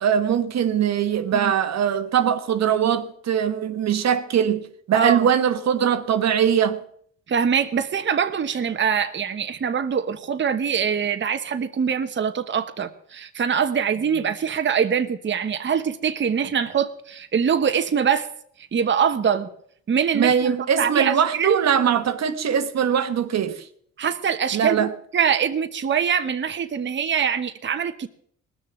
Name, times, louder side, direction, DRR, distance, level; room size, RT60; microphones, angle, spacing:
voice 1, 0.0-6.8 20.1-23.7 24.5-24.9, right 8 dB, 60° right, 1.2 m, -21 dB
voice 2, 4.9-5.3 7.3-18.3 18.7-19.5 19.9-21.6 24.0-24.9 25.1-28.1, right 7 dB, 40° right, 1.1 m, -23 dB
19.5 x 6.8 x 9.2 m
cardioid pair, 90°, 30 cm